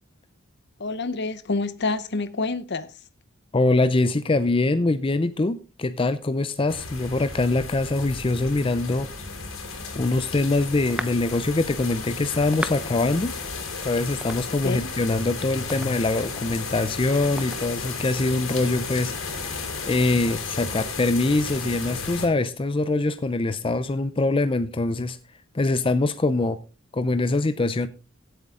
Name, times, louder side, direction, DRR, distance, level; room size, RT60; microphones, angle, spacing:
voice 1, 0.8-2.9 14.6-14.9, left 3 dB, 55° left, 0.8 m, -27 dB
voice 2, 3.5-9.1 9.9-13.3 13.8-25.2 25.5-26.6 26.9-27.9, left 2 dB, 25° left, 0.5 m, -23 dB
sound 1, 6.7-22.3, left 4 dB, 75° left, 3.6 m, -34 dB
sound 2, 9.9-18.4, right 1 dB, 5° right, 0.8 m, -41 dB
16.0 x 8.0 x 3.7 m
head